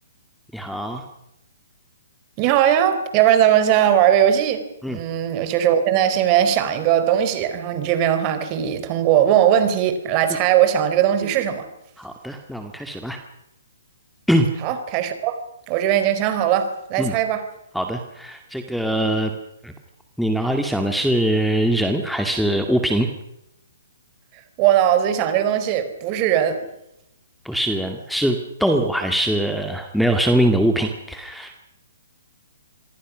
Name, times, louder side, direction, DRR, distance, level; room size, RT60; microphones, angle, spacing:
voice 1, 0.5-1.0 4.8-5.0 12.0-13.2 14.3-14.5 17.0-17.1 17.7-19.3 19.6-19.7 20.2-23.1 27.4-31.5, right 1 dB, ahead, 6 dB, 2.2 m, -22 dB
voice 2, 2.4-4.6 4.9-11.7 14.6-15.4 15.7-17.4 24.6-26.6, right 10 dB, 30° right, 10 dB, 4.4 m, -19 dB
27.0 x 23.0 x 6.4 m, 0.84 s
hypercardioid pair, 135°, 0 cm